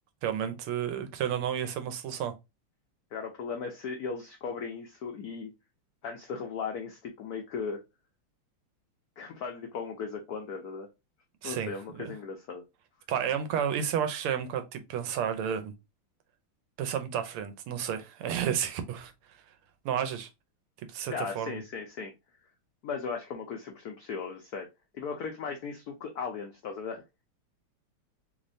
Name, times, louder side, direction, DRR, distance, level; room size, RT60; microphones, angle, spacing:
voice 1, 0.2-2.3 11.4-12.1 13.1-15.7 16.8-19.1 19.8-20.3 20.9-21.6, right 8 dB, 90° right, 1.5 m, -31 dB
voice 2, 3.1-5.5 6.0-7.8 9.2-10.9 11.4-12.6 21.1-22.1 22.8-24.7 24.9-27.0, left 5 dB, 85° left, 0.8 m, -37 dB
3.5 x 3.1 x 2.6 m
omnidirectional pair, 2.4 m